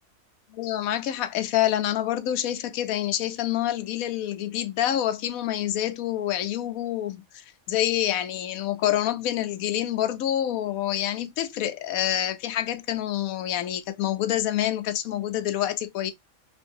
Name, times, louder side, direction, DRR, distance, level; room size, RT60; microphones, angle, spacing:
voice 1, 0.5-16.1, left 12 dB, 75° left, 1.0 m, -27 dB
3.1 x 2.6 x 2.6 m
omnidirectional pair, 1.5 m